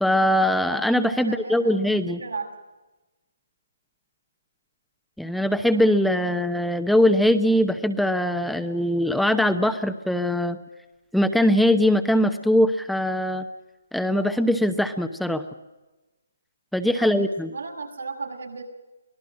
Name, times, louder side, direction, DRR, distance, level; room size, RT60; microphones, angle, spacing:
voice 1, 0.0-2.2 5.2-10.6 11.1-13.5 13.9-15.4 16.7-17.5, left 1 dB, ahead, 7 dB, 0.9 m, -21 dB
voice 2, 1.2-2.5 6.1-6.5 16.9-18.6, right 4 dB, 80° right, 2 dB, 6.6 m, -36 dB
25.0 x 18.0 x 7.5 m, 1.1 s
hypercardioid pair, 150°, 0 cm